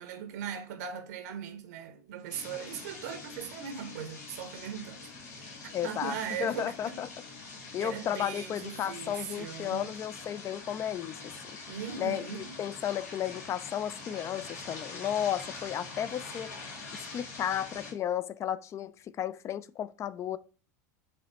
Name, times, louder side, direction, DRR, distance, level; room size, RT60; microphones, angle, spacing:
voice 1, 0.0-7.0 7.8-9.9 11.7-12.6, right 8 dB, 70° right, 0.7 m, -39 dB
sound 1, 2.3-17.9, left 3 dB, 70° left, 1.4 m, -45 dB
voice 2, 5.7-7.1 7.7-11.6 12.0-16.5 16.9-20.4, left 10 dB, 30° left, 0.4 m, -34 dB
5.5 x 3.1 x 2.9 m
hypercardioid pair, 90°, 9 cm